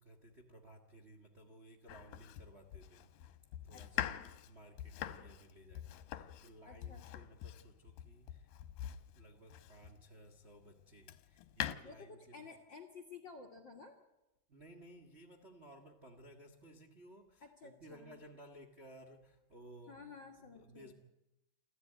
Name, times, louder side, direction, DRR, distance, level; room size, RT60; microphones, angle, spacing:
voice 1, 0.0-3.4 3.6-4.1 4.5-8.5 9.1-12.4 14.5-20.9, right 1 dB, 75° right, 2 dB, 0.6 m, -58 dB
Domestic sounds home sounds, 1.9-10.1 10.6-11.8, left 12 dB, 75° left, 2.4 m, -44 dB
voice 2, 3.7-4.2 6.6-7.2 11.8-14.0 17.4-18.2 19.9-20.9, left 5 dB, 55° left, 2 dB, 1.2 m, -53 dB
29.0 x 13.0 x 9.2 m, 0.94 s
omnidirectional pair, 4.4 m